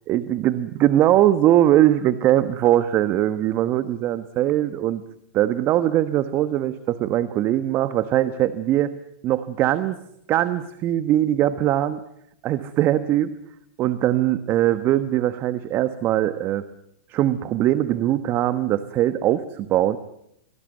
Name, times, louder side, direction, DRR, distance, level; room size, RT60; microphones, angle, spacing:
voice 1, 0.1-5.0 5.3-8.9 9.2-10.0 10.3-12.0 12.4-13.3 13.8-16.6 17.1-20.0, right 13 dB, 35° right, 12 dB, 1.2 m, -21 dB
24.0 x 18.5 x 9.3 m, 0.77 s
hypercardioid pair, 115°, 7 cm